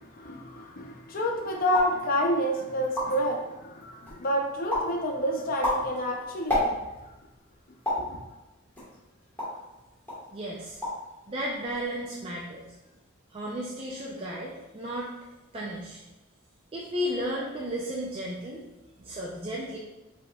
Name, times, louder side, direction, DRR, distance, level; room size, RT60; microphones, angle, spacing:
voice 1, 0.0-6.8 8.0-8.2, equal, 45° left, 1 dB, 0.6 m, -29 dB
sound 1, 1.7-2.0 2.5-2.6 2.8-3.3 3.8-4.3 4.7-5.0 5.4-7.1 7.8-8.1 8.8-9.7 10.1-10.3 10.6-11.1 11.3-11.8, left 1 dB, 10° left, 1.2 m, -30 dB
voice 2, 10.3-10.8 11.3-12.6 13.3-15.1 15.5-16.0 16.7-18.6 19.0-19.8, equal, 30° right, -4 dB, 0.4 m, -34 dB
5.0 x 2.9 x 2.3 m, 1.0 s
head